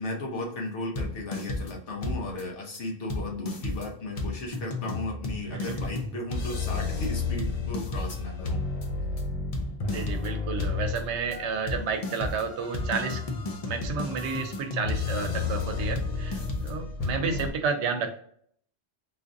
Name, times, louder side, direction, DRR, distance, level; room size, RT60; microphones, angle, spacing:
voice 1, 0.0-8.6, left 1 dB, 90° left, 1 dB, 1.2 m, -35 dB
sound 1, 1.0-1.8 2.0-2.4 2.7-2.8 3.1-17.5, left 3 dB, 45° left, 0.5 m, -32 dB
voice 2, 9.9-13.2 13.7-18.2, right 5 dB, 80° right, 7 dB, 0.9 m, -31 dB
3.9 x 2.5 x 2.5 m, 0.62 s
omnidirectional pair, 1.2 m